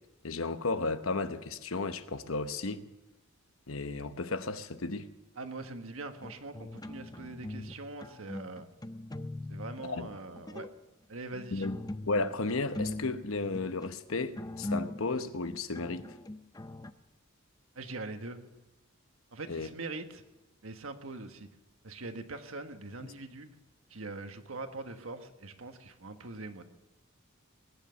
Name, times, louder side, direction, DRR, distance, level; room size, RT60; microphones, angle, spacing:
voice 1, 0.2-2.9 3.7-5.1 9.8-10.1 11.5-11.8 12.1-16.2 19.5-19.7, left 3 dB, 70° left, 1.0 m, -33 dB
voice 2, 5.4-8.7 9.5-10.7 11.1-11.7 17.7-18.4 19.3-20.2 20.6-21.5 21.8-23.6 23.9-26.7, right 2 dB, 70° right, 1.5 m, -42 dB
sound 1, 6.2-7.7 8.0-9.8 10.3-10.8 11.3-16.9, left 1 dB, 20° left, 0.6 m, -41 dB
19.5 x 10.5 x 7.0 m
head